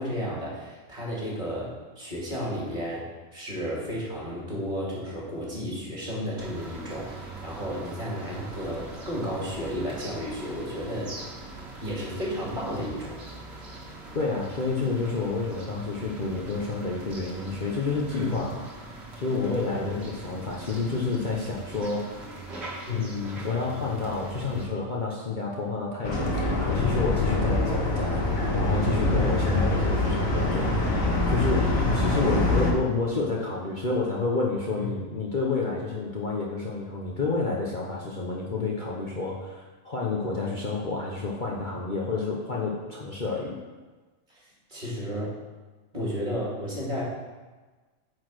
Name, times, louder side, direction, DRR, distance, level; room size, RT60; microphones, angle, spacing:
voice 1, 0.0-3.0 3.3-11.1 11.8-13.2 18.1-18.4 19.4-20.2 22.9-23.2 28.9-29.3 31.7-32.0 34.7-34.9 44.3-45.3 45.9-47.0, equal, 35° right, -5 dB, 2.6 m, -33 dB
sound 1, 6.4-24.6, right 2 dB, 55° right, 1.9 m, -42 dB
voice 2, 14.1-22.4 22.9-30.9 31.3-43.6, left 3 dB, 40° left, -3 dB, 1.1 m, -29 dB
sound 2, 26.0-32.7, left 2 dB, 85° left, 1.8 m, -24 dB
9.2 x 4.8 x 6.2 m, 1.3 s
omnidirectional pair, 1.4 m